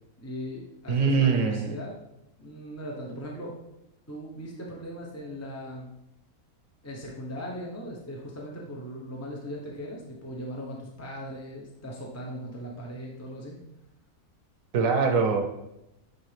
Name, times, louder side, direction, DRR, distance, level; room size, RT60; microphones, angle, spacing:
voice 1, 0.2-2.0 2.4-3.6 4.1-5.9 6.8-13.6, equal, 15° left, -2 dB, 0.8 m, -38 dB
voice 2, 0.9-1.8 14.7-15.4, right 5 dB, 65° right, 5 dB, 1.2 m, -23 dB
9.6 x 3.7 x 3.4 m, 0.86 s
omnidirectional pair, 1.5 m